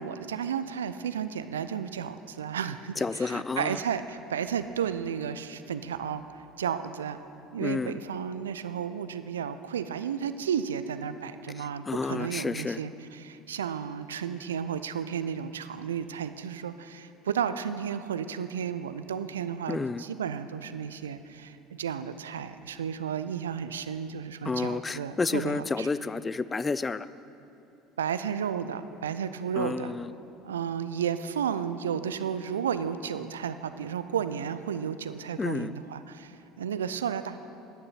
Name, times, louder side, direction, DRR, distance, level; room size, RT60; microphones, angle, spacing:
voice 1, 0.0-6.2 6.6-7.2 7.5-25.9 28.0-29.9 30.4-37.5, right 8 dB, 80° right, 12 dB, 0.4 m, -33 dB
voice 2, 3.0-3.8 7.6-8.0 11.6-12.8 19.7-20.0 24.4-27.1 29.6-30.1 35.4-35.7, left 4 dB, 20° left, 15 dB, 0.3 m, -30 dB
10.5 x 9.4 x 5.7 m, 2.7 s
figure-of-eight pair, 65°, 0 cm